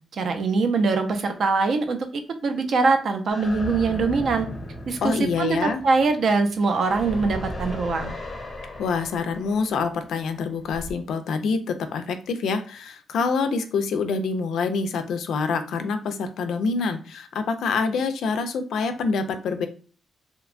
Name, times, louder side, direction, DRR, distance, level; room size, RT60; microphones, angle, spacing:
voice 1, 0.1-2.0 2.4-4.5 4.9-8.1, right 4 dB, 55° right, 6 dB, 0.4 m, -22 dB
sound 1, 3.3-10.9, equal, 30° left, 0.5 m, -36 dB
voice 2, 5.0-5.8 8.8-19.7, left 4 dB, 85° left, 8 dB, 0.4 m, -26 dB
2.8 x 2.2 x 2.4 m, 0.39 s
wide cardioid pair, 155°, 0 cm